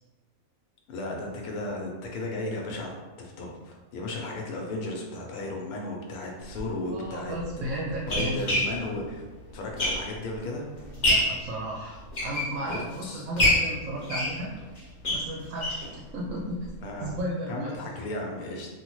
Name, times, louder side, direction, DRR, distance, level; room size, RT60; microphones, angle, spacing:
voice 1, 0.9-7.4 8.1-9.2 9.5-10.6 12.7-13.3 13.9-14.1 16.8-17.1 17.5-18.7, left 2 dB, 90° left, 0 dB, 1.1 m, -35 dB
sound 1, 6.5-6.6 7.4-10.4 10.8-11.4 11.9-12.9 13.4-15.9 16.3-16.4 16.6-16.7 17.1-17.2, left 1 dB, 40° left, 0.8 m, -27 dB
voice 2, 6.9-8.4 11.0-14.6 15.1-16.7 17.0-17.8, right 1 dB, 75° right, -4 dB, 1.0 m, -34 dB
3.3 x 2.2 x 3.0 m, 1.3 s
omnidirectional pair, 1.5 m